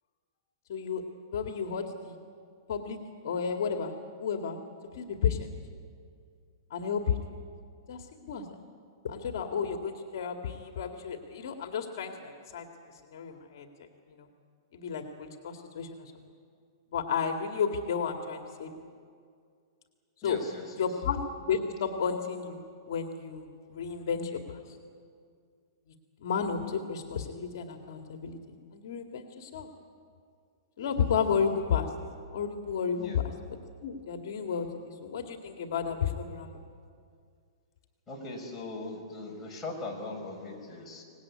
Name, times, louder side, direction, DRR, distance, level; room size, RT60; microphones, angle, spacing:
voice 1, 0.7-1.0 1.3-2.2 2.7-3.0 3.2-4.6 5.0-5.5 6.7-7.2 7.9-8.4 9.0-12.7 13.1-13.7 14.1-14.3 14.7-16.1 16.9-18.7 20.2-20.4 20.8-24.6 26.2-29.7 30.8-31.9 32.3-33.2 33.8-36.6, left 6 dB, 60° left, 4 dB, 2.1 m, -32 dB
voice 2, 20.2-20.9 33.0-33.2 38.1-41.0, left 2 dB, 10° left, -3 dB, 5.0 m, -40 dB
24.5 x 19.0 x 9.7 m, 2.2 s
hypercardioid pair, 160°, 2 cm